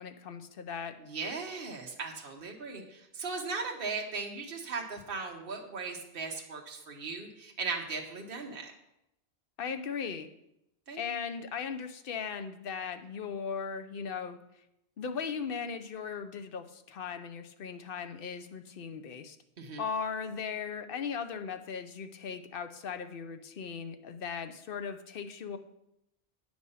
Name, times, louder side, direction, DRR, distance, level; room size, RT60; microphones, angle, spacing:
voice 1, 0.0-1.0 9.6-10.3 11.0-14.4 15.0-19.4 19.8-25.6, left 6 dB, 60° left, 9 dB, 0.8 m, -38 dB
voice 2, 1.1-8.7 10.9-11.0 19.6-19.8, right 4 dB, 55° right, 0 dB, 1.3 m, -38 dB
8.7 x 6.1 x 5.6 m, 0.82 s
omnidirectional pair, 1.1 m